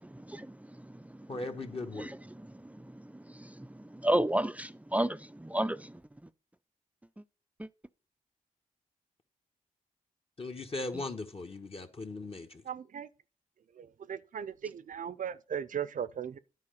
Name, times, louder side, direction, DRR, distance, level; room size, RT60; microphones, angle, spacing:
voice 1, 1.3-2.1 10.4-12.6, left 2 dB, 40° left, 1.3 m, -38 dB
voice 2, 3.4-3.7 3.9-5.9 7.6-7.7, right 1 dB, 10° right, 0.4 m, -31 dB
voice 3, 12.6-13.1 13.8-16.4, right 8 dB, 65° right, 0.6 m, -38 dB
9.8 x 4.8 x 6.5 m
cardioid pair, 50°, 14 cm